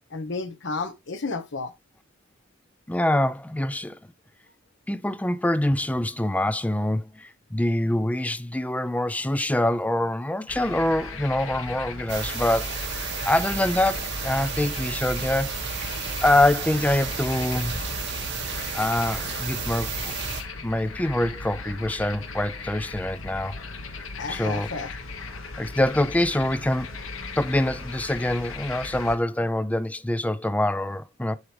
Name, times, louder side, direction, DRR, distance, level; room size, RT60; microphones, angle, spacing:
voice 1, 0.1-1.7 24.2-24.9, left 3 dB, 65° left, 1.1 m, -32 dB
voice 2, 2.9-4.0 4.9-12.8 13.3-15.9 16.2-17.8 18.7-20.1 20.6-23.6 24.3-24.7 25.6-26.9 27.4-31.4, left 1 dB, 5° left, 0.5 m, -25 dB
sound 1, 10.5-29.2, left 3 dB, 85° left, 1.2 m, -37 dB
sound 2, 12.1-20.4, right 5 dB, 60° right, 1.9 m, -32 dB
9.7 x 4.8 x 3.3 m
head